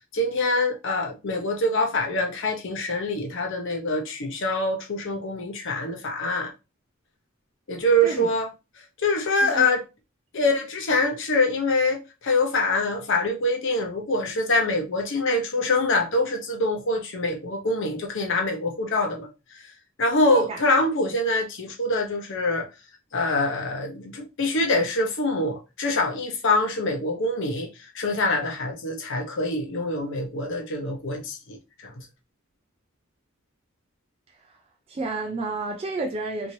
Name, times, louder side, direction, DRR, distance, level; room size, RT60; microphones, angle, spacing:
voice 1, 0.1-6.5 7.7-8.5 9.0-9.8 10.3-19.3 20.0-22.7 23.1-27.7 27.9-31.6 31.8-32.0, left 2 dB, 60° left, 0.8 m, -25 dB
voice 2, 8.0-8.3 9.4-9.7 20.3-20.6 34.4-34.6 34.9-36.5, right 3 dB, 25° right, 0.4 m, -31 dB
2.9 x 2.6 x 2.6 m
head